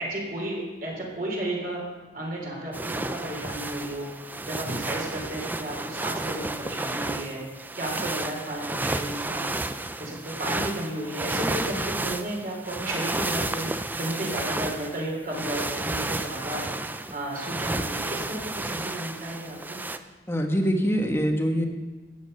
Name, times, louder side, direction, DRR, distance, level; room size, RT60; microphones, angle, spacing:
voice 1, 0.0-1.8 2.1-4.1 4.4-7.4 7.7-9.6 10.0-13.7 14.0-16.6 17.1-19.8, right 1 dB, 50° right, -2 dB, 3.7 m, -33 dB
sound 1, 2.7-20.0, right 2 dB, 10° right, 0.4 m, -32 dB
voice 2, 20.3-21.7, equal, 15° left, 3 dB, 1.2 m, -24 dB
14.0 x 9.4 x 5.5 m, 1.3 s
head